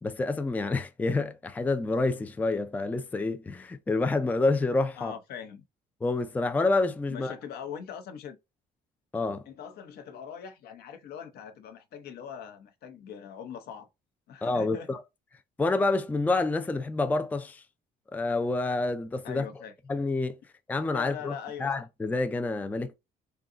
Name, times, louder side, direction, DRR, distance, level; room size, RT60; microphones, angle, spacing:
voice 1, 0.0-5.1 6.0-7.3 9.1-9.4 14.4-15.0 15.6-17.6 18.1-19.5 19.9-20.4 20.7-22.9, left 3 dB, 10° left, 0.4 m, -28 dB
voice 2, 5.0-5.7 7.1-8.4 9.5-13.9 14.3-14.9 19.2-19.7 20.9-21.7, left 8 dB, 70° left, 0.9 m, -41 dB
3.8 x 2.3 x 3.8 m
cardioid pair, 110°, 17 cm